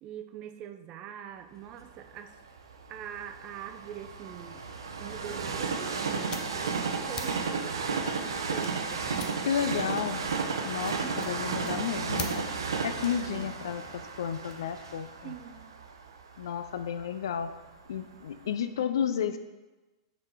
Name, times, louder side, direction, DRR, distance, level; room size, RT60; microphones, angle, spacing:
voice 1, 0.0-2.4 2.9-4.7 5.0-6.8 7.0-10.0 10.9-11.5 13.2-13.5 15.2-15.7, right 9 dB, 40° right, 8 dB, 0.5 m, -44 dB
Train, 1.8-17.8 18.3-18.4, right 5 dB, 85° right, 0.6 m, -34 dB
sound 1, 5.6-15.4, left 6 dB, 30° left, 0.6 m, -47 dB
voice 2, 9.5-10.2 10.6-12.5 12.8-15.3 16.4-17.5 17.9-19.4, left 8 dB, 75° left, 11 dB, 0.4 m, -32 dB
5.4 x 4.1 x 4.6 m, 1.1 s
hypercardioid pair, 105°, 2 cm